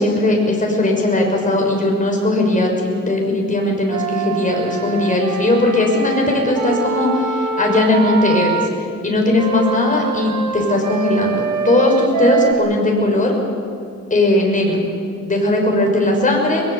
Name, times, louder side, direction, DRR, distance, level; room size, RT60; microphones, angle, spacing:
voice 1, 0.0-8.7 9.0-13.4 14.1-14.8 15.3-16.6, left 2 dB, 25° left, 0 dB, 6.2 m, -18 dB
Wind instrument woodwind instrument, 3.9-8.7 9.4-12.5, right 6 dB, 90° right, 1.7 m, -24 dB
23.5 x 21.5 x 8.2 m, 2.4 s
wide cardioid pair, 120°, 29 cm